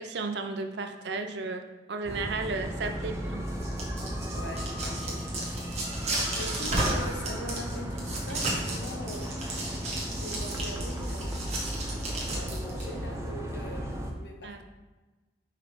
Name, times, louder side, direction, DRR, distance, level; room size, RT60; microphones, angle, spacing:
voice 1, 0.0-3.4 14.4-14.6, right 3 dB, 70° right, 7 dB, 0.5 m, -34 dB
sound 1, 2.0-14.1, equal, 15° right, 0.5 m, -35 dB
sound 2, 3.5-12.8, right 2 dB, 35° right, 1.3 m, -33 dB
voice 2, 4.3-9.3 10.1-14.6, left 1 dB, 75° left, 2 dB, 0.9 m, -42 dB
5.6 x 3.5 x 5.0 m, 1.2 s
head